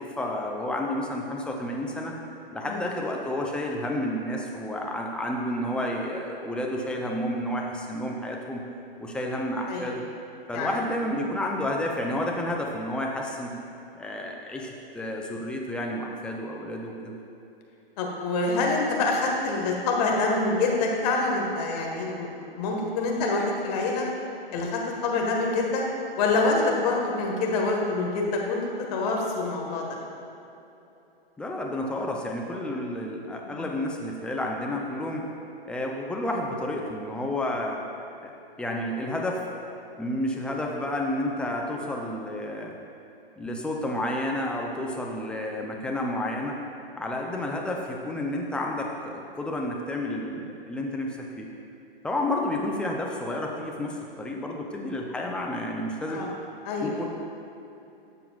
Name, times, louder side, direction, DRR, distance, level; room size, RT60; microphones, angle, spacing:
voice 1, 0.0-2.1 2.5-8.6 9.0-10.0 10.5-13.5 14.0-17.1 31.4-35.3 35.6-37.8 38.2-38.3 38.6-39.4 40.0-42.7 43.4-46.6 46.9-51.5 52.0-56.2 56.8-57.0, left 1 dB, 5° left, -1 dB, 0.4 m, -30 dB
voice 2, 18.0-22.3 22.6-24.1 24.5-25.8 26.2-29.8 33.4-33.6 56.1-56.3 56.6-57.0, left 3 dB, 40° left, 0 dB, 1.5 m, -26 dB
12.5 x 7.7 x 2.4 m, 2.8 s
hypercardioid pair, 120°, 30 cm